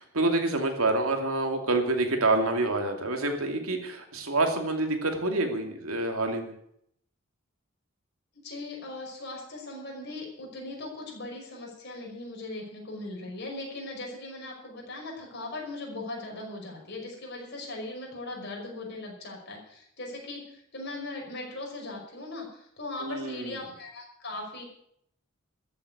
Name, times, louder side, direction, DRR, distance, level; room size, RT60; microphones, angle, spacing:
voice 1, 0.0-6.5 23.0-23.6, right 2 dB, 90° right, 4 dB, 2.7 m, -27 dB
voice 2, 8.4-24.6, left 2 dB, 55° left, 0 dB, 5.6 m, -39 dB
14.0 x 8.0 x 9.6 m, 0.73 s
head